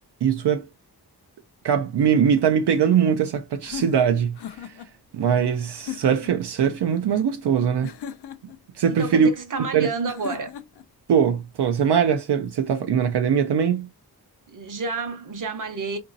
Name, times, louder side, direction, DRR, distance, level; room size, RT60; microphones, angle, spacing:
voice 1, 0.2-0.7 1.6-4.7 5.1-7.9 8.7-9.3 9.7-9.9 11.1-13.9, right 7 dB, 80° right, 0.5 m, -21 dB
sound 1, 3.6-4.9 5.7-6.4 7.8-8.6 10.0-10.9, left 9 dB, 75° left, 0.5 m, -37 dB
voice 2, 8.9-10.5 14.5-16.0, right 4 dB, 50° right, 0.8 m, -30 dB
3.8 x 2.7 x 2.5 m
wide cardioid pair, 95°, 40 cm